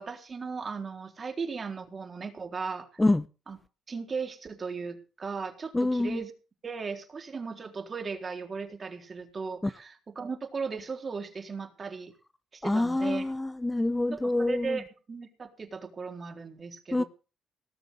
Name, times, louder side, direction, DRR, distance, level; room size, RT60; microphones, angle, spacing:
voice 1, 0.0-2.9 3.5-3.6 3.9-6.3 6.6-12.1 12.5-13.2 14.1-17.1, right 5 dB, 40° right, 4.0 m, -37 dB
voice 2, 5.7-6.2 12.6-14.8 16.9-17.0, left 2 dB, 15° left, 0.7 m, -26 dB
19.0 x 7.1 x 8.1 m
cardioid pair, 90°, 0 cm